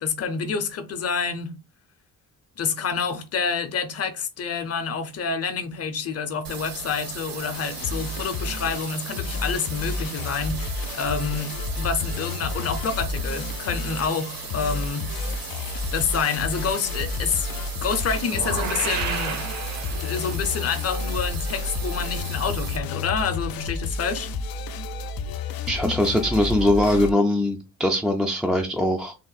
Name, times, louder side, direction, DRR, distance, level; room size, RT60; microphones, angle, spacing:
voice 1, 0.0-1.5 2.6-15.1 15.9-17.5 17.8-19.4 19.9-24.3, left 5 dB, 45° left, 0.7 m, -28 dB
sound 1, 6.4-22.8, right 6 dB, 75° right, 1.1 m, -37 dB
sound 2, 7.5-27.1, left 4 dB, 85° left, 0.5 m, -31 dB
sound 3, 18.3-20.5, right 6 dB, 55° right, 0.7 m, -31 dB
voice 2, 25.7-29.2, left 1 dB, ahead, 0.3 m, -22 dB
3.6 x 2.5 x 3.9 m
wide cardioid pair, 175°, 34 cm